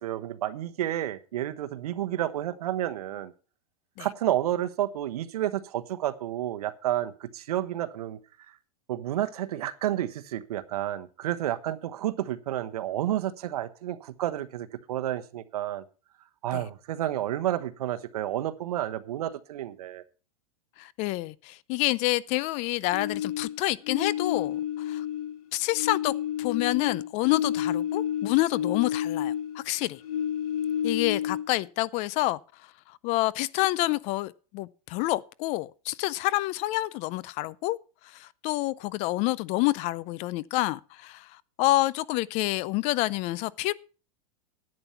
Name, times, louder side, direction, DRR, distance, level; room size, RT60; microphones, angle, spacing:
voice 1, 0.0-3.3 4.0-8.2 8.9-15.8 16.4-20.0, right 12 dB, 80° right, 1.1 m, -30 dB
voice 2, 20.8-25.0 25.5-30.0 30.8-32.4 33.0-37.8 38.1-41.3 41.6-43.7, left 18 dB, 35° left, 0.5 m, -28 dB
sound 1, 22.9-25.4 25.7-29.6 30.0-31.7, left 10 dB, 75° left, 2.1 m, -30 dB
11.0 x 8.8 x 5.7 m
supercardioid pair, 145°, 19 cm